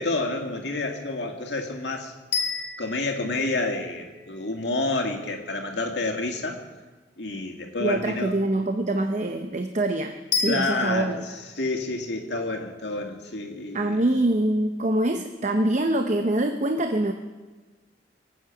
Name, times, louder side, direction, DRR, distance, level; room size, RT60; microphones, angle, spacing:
voice 1, 0.0-2.1 2.8-6.6 7.2-8.3 10.5-14.0, left 2 dB, 75° left, 2 dB, 2.2 m, -29 dB
sound 1, 2.3-4.5 10.3-11.1, left 4 dB, 40° left, 1.9 m, -31 dB
voice 2, 7.8-11.2 13.7-17.1, right 1 dB, 40° right, 6 dB, 0.7 m, -24 dB
24.0 x 8.7 x 6.0 m, 1.3 s
head